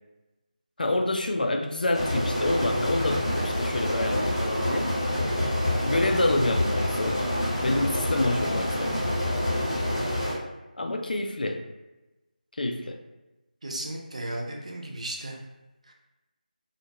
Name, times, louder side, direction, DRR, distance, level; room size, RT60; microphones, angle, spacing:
voice 1, 0.8-5.0 5.8-7.3 7.6-9.0 10.8-11.6 12.5-13.0, left 2 dB, 70° left, 4 dB, 0.4 m, -27 dB
sound 1, 1.9-10.3, left 1 dB, 35° left, 0.7 m, -27 dB
voice 2, 13.6-15.4 15.9-16.0, right 1 dB, 45° right, 0 dB, 0.4 m, -35 dB
2.4 x 2.2 x 2.8 m, 1.1 s
figure-of-eight pair, 175°, 5 cm